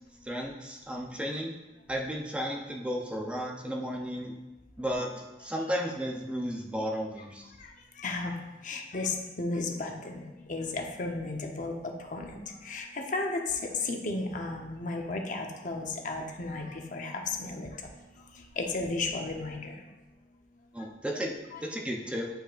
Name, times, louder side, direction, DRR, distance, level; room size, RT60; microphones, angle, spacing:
voice 1, 0.2-1.5 1.9-4.3 4.8-7.5 20.7-21.3 21.6-22.3, equal, 5° right, -1 dB, 0.6 m, -34 dB
voice 2, 7.6-8.3 8.6-10.2 10.5-17.8 18.3-19.8 20.8-20.9 21.5-21.6, left 3 dB, 45° left, 2 dB, 0.8 m, -34 dB
8.9 x 5.3 x 2.5 m, 1.1 s
head